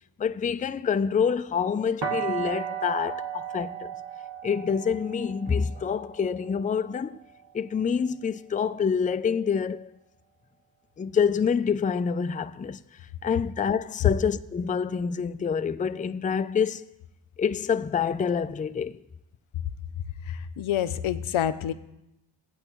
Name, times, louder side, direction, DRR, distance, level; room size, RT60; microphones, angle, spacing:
voice 1, 0.2-3.9 4.4-7.2 7.5-9.9 11.0-12.8 13.2-16.8 17.4-19.0, left 6 dB, 20° left, 0.3 m, -27 dB
sound 1, 2.0-7.9, right 8 dB, 65° right, 1.8 m, -35 dB
voice 2, 20.2-21.7, left 10 dB, 90° left, 0.6 m, -28 dB
16.0 x 8.8 x 3.0 m
cardioid pair, 60°, 47 cm